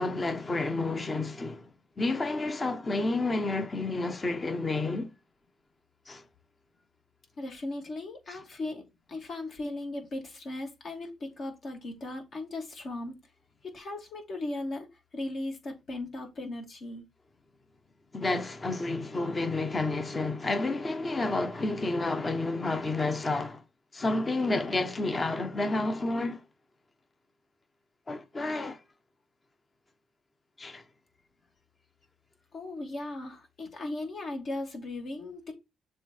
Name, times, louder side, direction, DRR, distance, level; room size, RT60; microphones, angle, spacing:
voice 1, 0.0-1.7 2.0-5.1 6.1-6.2 8.3-8.4 18.1-23.6 23.9-26.4 28.1-28.8 30.6-30.8, left 2 dB, 30° left, 1.1 m, -30 dB
voice 2, 7.4-8.8 9.1-13.1 13.7-14.9 15.1-17.0 32.5-35.5, left 2 dB, 55° left, 2.8 m, -37 dB
7.0 x 3.5 x 4.5 m
cardioid pair, 90°, 0 cm